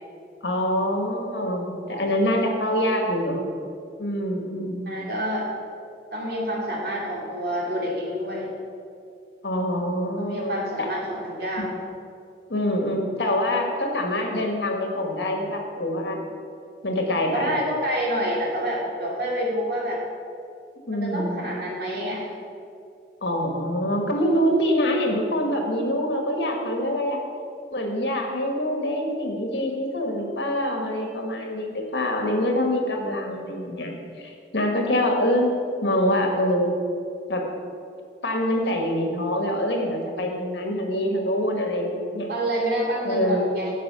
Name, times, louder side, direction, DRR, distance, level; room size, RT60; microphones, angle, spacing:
voice 1, 0.4-3.5 4.0-5.0 9.4-10.9 11.6-11.8 12.5-16.2 16.8-17.5 20.9-21.4 23.2-27.2 27.7-35.5 35.8-36.7 37.3-37.4 38.2-42.3 43.0-43.4, left 1 dB, 80° left, 2 dB, 1.7 m, -25 dB
voice 2, 4.9-5.5 6.1-8.5 10.2-11.7 17.3-20.0 20.9-22.3 42.3-43.7, equal, 65° right, -3 dB, 2.7 m, -28 dB
10.0 x 7.6 x 6.2 m, 2.4 s
head